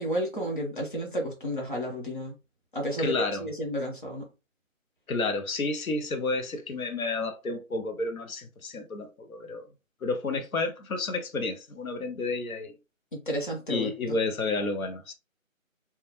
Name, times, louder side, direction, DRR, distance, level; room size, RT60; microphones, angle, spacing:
voice 1, 0.0-2.3 2.7-4.3 13.1-14.2, equal, 40° left, 0.9 m, -32 dB
voice 2, 3.0-3.5 5.1-9.7 10.0-12.7 13.7-15.1, left 3 dB, 85° left, 0.7 m, -31 dB
2.2 x 2.2 x 3.0 m
figure-of-eight pair, 170°, 41 cm